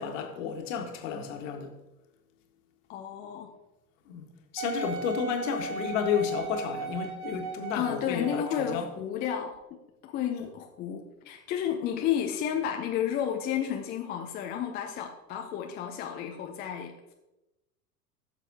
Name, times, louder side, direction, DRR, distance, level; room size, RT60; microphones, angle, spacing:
voice 1, 0.0-1.7 4.1-4.3 4.5-8.8, left 7 dB, 50° left, 1.6 m, -32 dB
voice 2, 2.9-3.5 7.7-9.6 10.0-17.1, left 9 dB, 20° left, 0.5 m, -32 dB
Wind instrument woodwind instrument, 4.6-8.9 9.5-9.6, right 4 dB, 35° right, 1.5 m, -37 dB
15.5 x 6.9 x 2.8 m
figure-of-eight pair, 95°, 49 cm